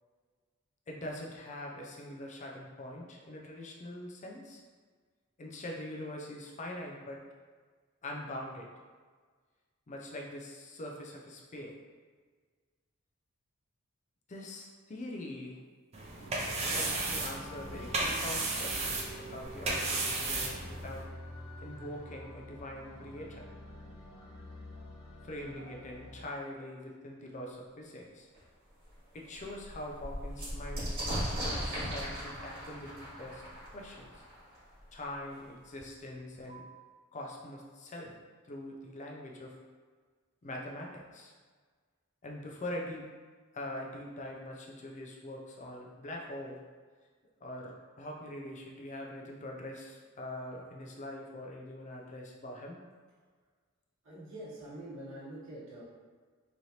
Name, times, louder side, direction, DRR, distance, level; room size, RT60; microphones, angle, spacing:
voice 1, 0.9-4.6 5.4-7.2 8.0-8.7 9.9-11.7 14.3-15.6 16.7-21.0 21.6-23.5 25.2-28.3 29.1-33.4 33.7-34.1 34.9-36.6 37.1-38.1 38.4-39.5 40.4-41.3 42.2-43.0 43.5-46.6 47.4-52.8, left 1 dB, 35° left, -1 dB, 0.4 m, -43 dB
sound 1, 15.9-21.0, right 2 dB, 30° right, 0.4 m, -34 dB
sound 2, 16.2-26.2, left 1 dB, 90° left, 0.9 m, -48 dB
sound 3, 28.3-28.4 28.9-29.0 29.3-34.8 35.8-35.9 36.1-36.7, equal, 50° right, 1.4 m, -38 dB
voice 2, 54.0-55.8, right 1 dB, 65° right, -8 dB, 1.1 m, -45 dB
3.1 x 2.6 x 2.8 m, 1.5 s
head